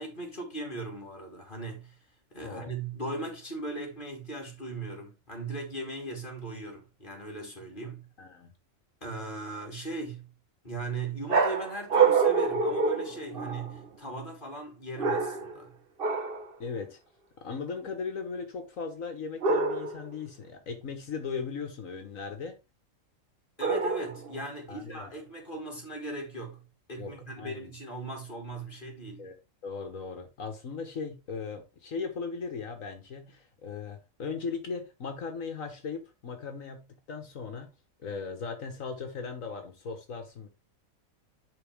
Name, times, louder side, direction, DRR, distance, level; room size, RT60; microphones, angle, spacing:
voice 1, 0.0-2.0 2.3-8.1 9.0-10.3 10.6-15.8 23.6-29.3, right 2 dB, 35° left, 2.6 m, -38 dB
voice 2, 2.4-2.7 8.2-8.5 16.6-17.0 17.4-22.6 24.7-25.1 27.0-27.1 27.4-27.7 29.2-37.7 38.0-40.5, left 5 dB, 70° left, 1.7 m, -38 dB
sound 1, 11.3-13.8 15.0-15.6 16.0-16.5 19.4-20.1 23.6-24.3, right 5 dB, 45° right, 1.2 m, -26 dB
11.0 x 4.2 x 3.5 m
omnidirectional pair, 1.4 m